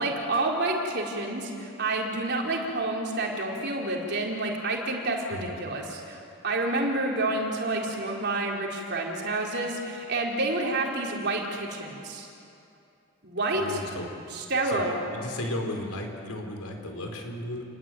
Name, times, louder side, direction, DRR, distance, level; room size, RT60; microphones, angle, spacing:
voice 1, 0.0-6.2 6.4-12.3 13.2-13.8 14.3-14.9, right 2 dB, 50° right, -1 dB, 4.3 m, -29 dB
voice 2, 13.5-14.1 14.6-14.8 15.1-17.6, left 1 dB, 85° left, 3 dB, 4.6 m, -34 dB
29.0 x 20.5 x 9.4 m, 2.7 s
head